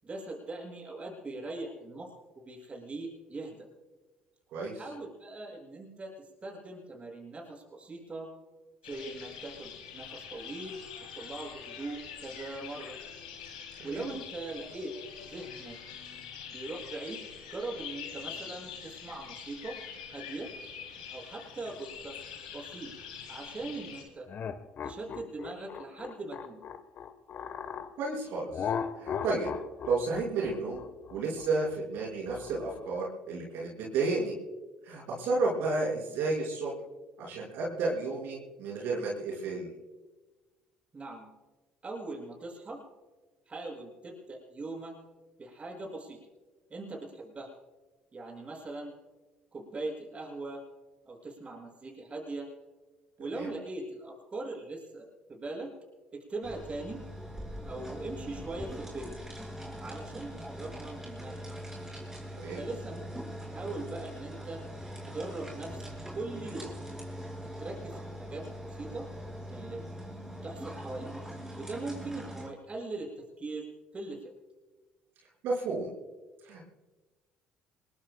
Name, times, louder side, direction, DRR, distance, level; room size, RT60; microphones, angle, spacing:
voice 1, 0.0-2.1 2.3-3.7 4.7-8.3 8.8-10.8 11.1-13.0 13.8-14.9 15.3-15.8 16.5-17.2 17.5-19.8 20.1-20.5 21.1-22.2 22.5-22.9 23.3-24.3 24.8-26.6 40.9-41.3 41.8-42.8 43.5-45.0 45.4-46.2 46.7-47.5 48.1-48.9 49.5-50.6 51.0-52.5 53.2-55.7 56.1-57.0 57.6-59.1 59.8-61.4 62.5-63.0 63.5-64.6 65.1-65.8 66.1-66.7 67.3-69.1 69.5-69.8 70.4-71.1 71.5-74.3, right 2 dB, 35° right, 0 dB, 6.5 m, -40 dB
sound 1, 8.8-24.0, left 7 dB, 90° left, 3.2 m, -45 dB
sound 2, 24.3-27.9 28.5-33.0, left 7 dB, 50° left, 1.3 m, -37 dB
voice 2, 28.0-28.7 29.0-29.5 29.9-30.8 31.1-34.3 34.8-36.7 37.2-39.7 53.3-53.5 62.4-62.6 75.4-75.9 76.4-76.7, right 3 dB, 65° right, -3 dB, 5.8 m, -32 dB
sound 3, 56.4-72.5, equal, 10° right, 5.9 m, -42 dB
27.5 x 22.0 x 2.3 m, 1.2 s
hypercardioid pair, 60°, 4 cm